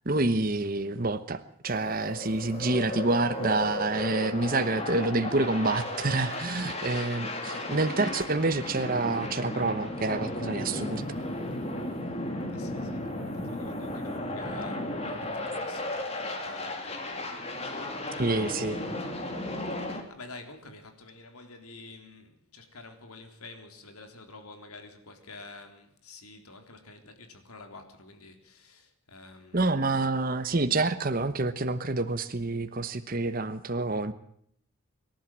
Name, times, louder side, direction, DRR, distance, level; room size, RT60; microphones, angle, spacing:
voice 1, 0.0-11.0 18.2-18.8 29.5-34.1, right 2 dB, 40° right, 10 dB, 1.0 m, -28 dB
sound 1, 1.7-20.0, left 1 dB, 30° left, 2.9 m, -35 dB
voice 2, 6.3-7.1 12.5-17.1 17.4-17.8 18.1-19.2 19.7-29.8, left 3 dB, 90° left, 6 dB, 3.7 m, -49 dB
25.0 x 12.0 x 9.1 m, 0.67 s
head